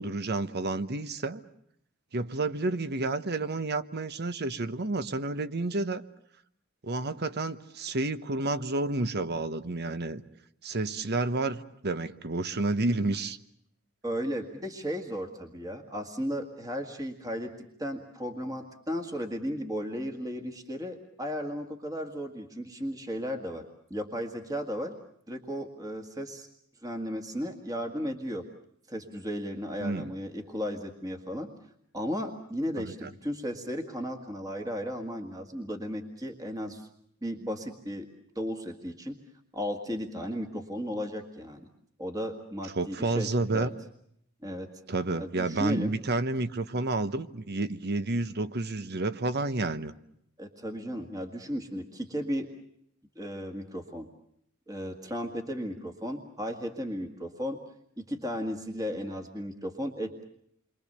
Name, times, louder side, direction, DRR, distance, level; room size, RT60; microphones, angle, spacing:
voice 1, 0.0-1.4 2.1-6.0 6.8-10.2 10.6-13.4 29.8-30.1 32.8-33.1 42.8-43.7 44.9-49.9, right 2 dB, 50° right, 12 dB, 1.1 m, -30 dB
voice 2, 14.0-17.5 17.8-23.6 23.9-24.9 25.3-26.5 26.8-28.5 28.9-31.5 31.9-36.9 37.2-38.1 38.4-39.2 39.5-41.6 42.0-43.7 44.4-44.7 45.2-45.9 50.4-52.5 53.2-54.1 54.7-57.6 58.0-60.2, equal, 15° right, 4 dB, 1.9 m, -35 dB
29.0 x 24.0 x 6.8 m, 0.71 s
head